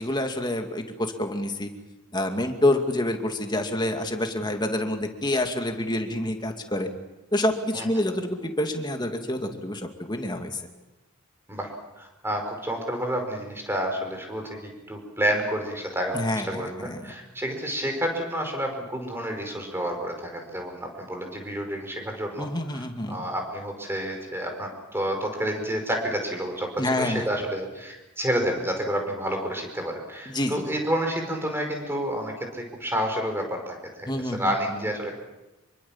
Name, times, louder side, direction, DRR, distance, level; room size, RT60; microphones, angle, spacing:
voice 1, 0.0-1.7 2.1-6.9 7.3-10.6 16.1-17.1 22.4-23.2 26.8-27.2 30.3-30.6 34.1-34.8, left 1 dB, 20° left, 4 dB, 2.4 m, -27 dB
voice 2, 12.0-35.1, equal, 10° right, 3 dB, 5.1 m, -29 dB
26.5 x 23.5 x 7.3 m, 1.0 s
head